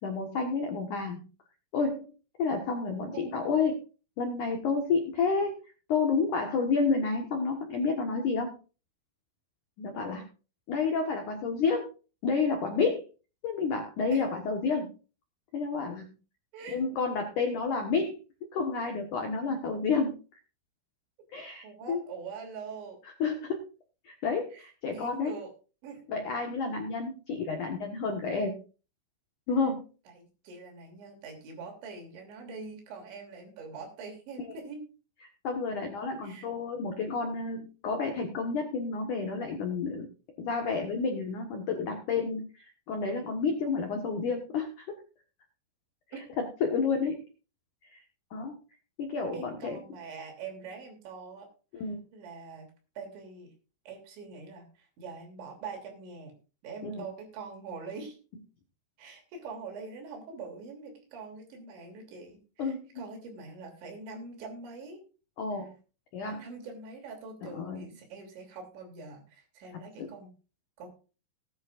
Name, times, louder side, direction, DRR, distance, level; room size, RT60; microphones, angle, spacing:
voice 1, 0.0-1.2 1.7-2.1 2.4-3.8 4.2-5.6 5.9-8.5 9.8-10.2 10.7-11.9 12.2-13.0 13.4-14.9 15.5-16.0 16.7-18.2 18.5-20.2 21.3-22.0 23.2-23.6 24.0-25.4 26.1-28.6 29.5-29.9 35.4-40.1 40.4-45.0 46.4-47.2 47.9-48.0 48.3-48.6 49.0-49.8 51.7-52.0 56.8-56.9 62.6-63.0 65.4-65.7 66.1-66.4 67.4-67.8 70.0-70.1, left 4 dB, 70° left, 3 dB, 1.9 m, -30 dB
voice 2, 21.6-23.0 24.5-25.5 25.8-26.1 30.1-34.8 36.2-36.5 46.1-46.2 49.3-51.5 52.1-52.7 53.0-53.5 53.9-56.3 56.6-58.2 59.0-65.0 66.2-70.3 70.8-70.9, right 4 dB, 65° right, 3 dB, 5.2 m, -44 dB
18.5 x 10.5 x 2.5 m, 0.34 s
omnidirectional pair, 5.8 m